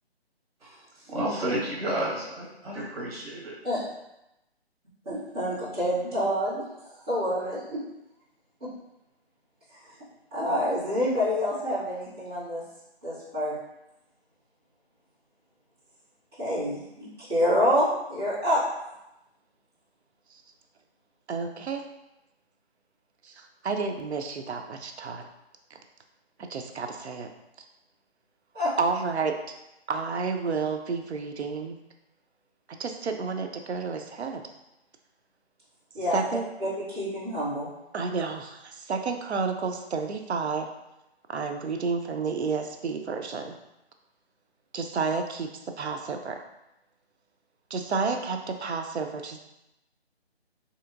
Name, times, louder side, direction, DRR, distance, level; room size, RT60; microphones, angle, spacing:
voice 1, 1.1-3.5, right 1 dB, 65° right, -5 dB, 1.5 m, -31 dB
voice 2, 5.0-7.8 8.6-8.7 10.3-12.6 13.0-13.5 16.4-18.6 28.5-28.7 35.9-36.2 36.6-37.7, equal, 25° right, -16 dB, 1.4 m, -27 dB
voice 3, 21.3-21.8 23.2-25.2 25.7-25.8 26.4-27.3 28.8-29.4 29.9-31.8 32.8-34.4 36.1-36.4 37.9-40.7 41.3-43.5 44.7-45.5 45.8-46.4 47.7-49.4, right 4 dB, 80° right, 5 dB, 0.6 m, -30 dB
3.3 x 2.8 x 2.5 m, 0.91 s
hypercardioid pair, 180°, 32 cm